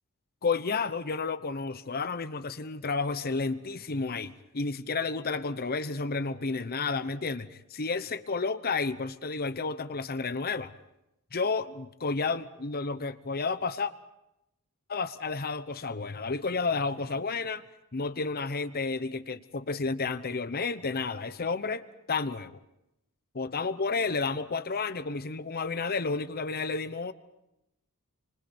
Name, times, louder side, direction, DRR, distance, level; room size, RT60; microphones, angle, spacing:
voice 1, 0.4-10.7 11.3-13.9 14.9-17.6 17.9-22.6 23.3-27.1, left 4 dB, 45° left, 12 dB, 0.9 m, -31 dB
29.0 x 25.5 x 4.4 m, 0.86 s
head